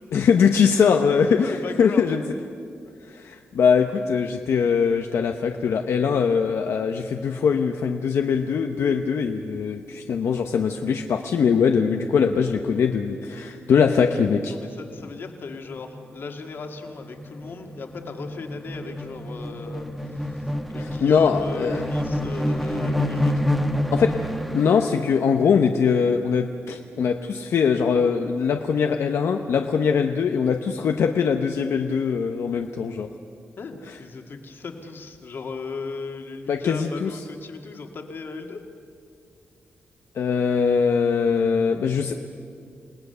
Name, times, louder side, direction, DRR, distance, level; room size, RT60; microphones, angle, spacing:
voice 1, 0.1-2.2 3.0-14.5 20.8-21.9 23.9-24.1 24.5-33.1 33.9-34.0 36.5-37.2 40.1-42.1, left 6 dB, 75° left, 4 dB, 0.9 m, -22 dB
voice 2, 1.4-2.1 14.5-20.4 20.7-23.5 33.6-38.6, left 4 dB, 55° left, 4 dB, 2.0 m, -37 dB
sound 1, 14.9-15.0 15.3-24.9, left 1 dB, ahead, 1.2 m, -28 dB
28.5 x 18.5 x 6.9 m, 2.4 s
wide cardioid pair, 165°, 4 cm